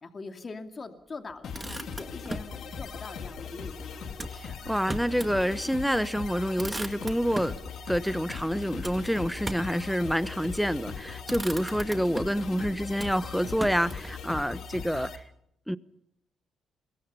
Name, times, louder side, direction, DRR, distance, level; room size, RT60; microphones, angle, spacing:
voice 1, 0.0-4.1, left 3 dB, 35° left, 6 dB, 2.7 m, -42 dB
Motor vehicle (road), 1.3-2.6 4.1-5.4 5.8-5.9 6.2-7.6 8.8-9.8 10.7-10.9 11.2-12.5 13.0-14.2, right 2 dB, 15° right, 2.0 m, -38 dB
sound 1, 1.4-15.2, left 6 dB, 65° left, 3.2 m, -39 dB
voice 2, 4.3-7.6 7.9-15.2 15.7-15.8, equal, ahead, 14 dB, 1.1 m, -28 dB
28.5 x 22.5 x 5.6 m, 0.75 s
cardioid pair, 90°, 0 cm